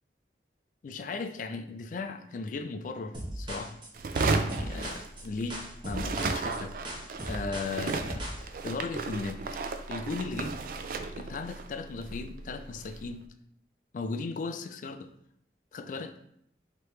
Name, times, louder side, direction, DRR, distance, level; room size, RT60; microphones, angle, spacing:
voice 1, 0.8-3.8 4.2-6.8 7.2-9.4 9.9-10.6 11.2-13.2 13.9-15.1 15.7-16.1, left 4 dB, 45° left, 8 dB, 0.3 m, -37 dB
sound 1, 3.1-8.4, equal, 30° right, 0.8 m, -38 dB
sound 2, 3.9-5.6 5.8-13.1, right 3 dB, 50° right, 0.3 m, -34 dB
3.2 x 2.9 x 4.6 m, 0.72 s
head